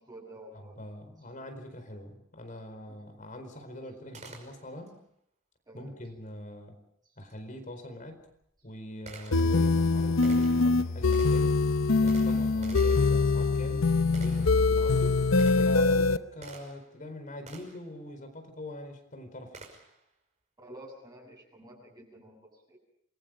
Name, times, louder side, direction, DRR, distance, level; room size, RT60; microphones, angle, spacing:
voice 1, 0.0-0.8 2.9-3.1 5.7-5.9 20.6-22.8, right 1 dB, 20° right, 0 dB, 7.1 m, -50 dB
voice 2, 0.5-5.0 5.7-6.8 7.2-8.2 8.6-11.6 12.0-13.9 14.2-15.3 15.5-19.6, left 1 dB, 45° left, 7 dB, 4.5 m, -43 dB
Gunshot gunfire, 4.1-5.0 7.3-7.4 8.1-17.0 17.5-17.9 19.5-20.1, right 3 dB, 40° right, 5.5 m, -50 dB
sound 1, 9.3-16.2, left 3 dB, 85° left, 0.8 m, -24 dB
28.5 x 22.5 x 5.3 m, 0.72 s
head